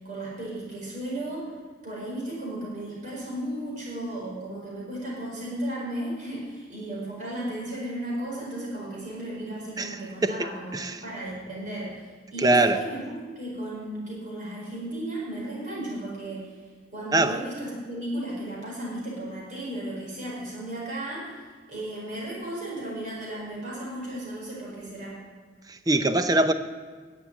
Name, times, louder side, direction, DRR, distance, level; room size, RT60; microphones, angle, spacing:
voice 1, 0.0-1.5 1.8-16.6 16.9-21.3 21.7-25.2, right 1 dB, 45° right, -4 dB, 4.9 m, -35 dB
voice 2, 10.2-11.0 12.4-12.8 17.1-17.4 25.7-26.5, right 2 dB, 20° right, 9 dB, 0.6 m, -23 dB
10.5 x 7.5 x 9.4 m, 1.5 s
head